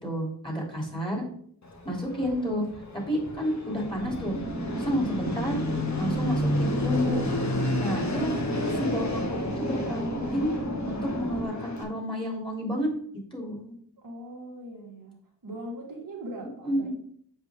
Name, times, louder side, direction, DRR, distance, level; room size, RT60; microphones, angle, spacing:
voice 1, 0.0-1.2 1.8-2.6 3.1-4.4 4.8-5.6 6.0-7.2 7.8-8.3 8.7-10.5 10.8-12.9 13.3-13.7 16.4-16.9, equal, 10° left, -1 dB, 3.2 m, -30 dB
Fixed-wing aircraft airplane, 1.6-11.8, left 1 dB, 40° left, 1.6 m, -31 dB
sound 1, 4.0-11.4, right 2 dB, 10° right, 2.0 m, -34 dB
voice 2, 14.0-15.2 15.4-16.9, right 1 dB, 50° right, -1 dB, 1.9 m, -40 dB
7.6 x 5.1 x 3.7 m, 0.63 s
cardioid pair, 65°, 43 cm